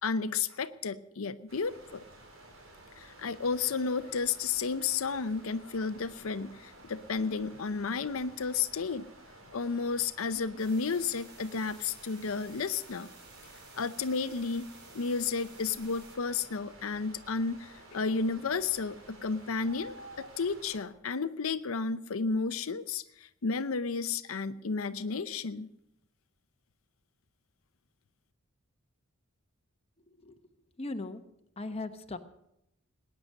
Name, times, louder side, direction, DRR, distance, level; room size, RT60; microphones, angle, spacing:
voice 1, 0.0-2.0 3.0-9.1 9.5-13.1 13.7-14.7 14.9-25.7, left 5 dB, 85° left, 11 dB, 0.7 m, -32 dB
sound 1, 1.5-20.8, right 2 dB, 75° right, 4.0 m, -53 dB
sound 2, 10.6-16.2, right 4 dB, 55° right, 3.7 m, -55 dB
voice 2, 30.1-30.4 30.8-31.2 31.6-32.2, left 2 dB, 30° left, 6 dB, 1.0 m, -38 dB
19.5 x 9.6 x 6.4 m, 0.81 s
head